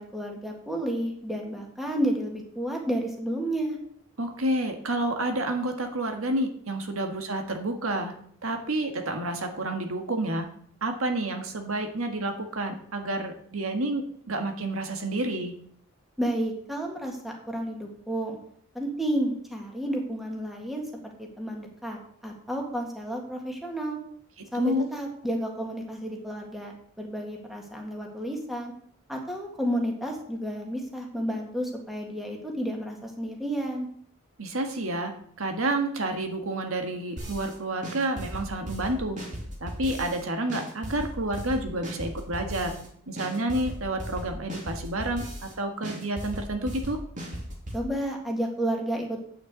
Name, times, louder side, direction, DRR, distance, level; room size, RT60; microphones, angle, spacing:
voice 1, 0.0-3.8 16.2-18.4 18.7-24.0 24.5-28.7 29.1-33.9 47.7-49.3, right 1 dB, ahead, 0 dB, 2.0 m, -31 dB
voice 2, 4.2-15.6 24.4-24.8 34.4-39.2 39.6-42.8 43.1-47.0, right 1 dB, 80° right, 4 dB, 1.7 m, -30 dB
sound 1, 37.2-37.5 37.8-40.2 40.5-42.9 43.2-45.5 45.8-47.8, equal, 35° right, 2.7 m, -36 dB
8.9 x 6.8 x 8.2 m, 0.63 s
head